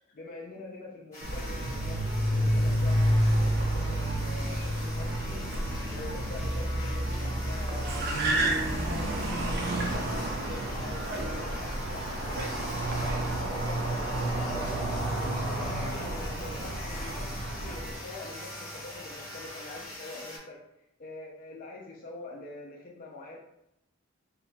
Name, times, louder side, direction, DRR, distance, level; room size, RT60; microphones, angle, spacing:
voice 1, 0.1-5.5 5.9-8.6 9.0-12.5 12.8-20.6 21.0-23.4, left 2 dB, 40° left, -2 dB, 0.3 m, -45 dB
sound 1, 1.1-20.4, left 1 dB, 15° left, 0.7 m, -43 dB
Car, 1.2-18.0, right 1 dB, 50° right, 0.4 m, -30 dB
sound 2, 9.6-19.9, right 1 dB, 70° right, 0.8 m, -39 dB
2.8 x 2.1 x 2.5 m, 0.84 s
head